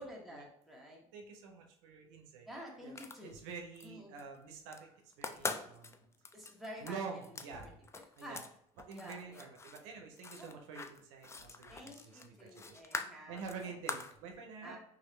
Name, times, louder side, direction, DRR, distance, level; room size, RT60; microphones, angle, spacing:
voice 1, 0.0-1.0 2.5-3.3 3.8-4.1 5.3-5.4 6.3-7.2 7.6-7.7 8.2-8.4 8.9-9.5 10.4-10.5 11.7-13.7 14.6-14.8, equal, ahead, -3 dB, 1.2 m, -50 dB
voice 2, 1.1-2.5 2.8-3.0 3.2-6.0 6.8-7.8 8.2-8.4 8.8-12.8 13.3-14.8, right 5 dB, 80° right, 3 dB, 0.6 m, -47 dB
sound 1, 2.8-3.9 4.2-4.8 5.1-8.5 8.8-14.2, left 4 dB, 20° left, 0.3 m, -44 dB
3.0 x 2.5 x 3.1 m, 0.72 s
supercardioid pair, 75°, 15 cm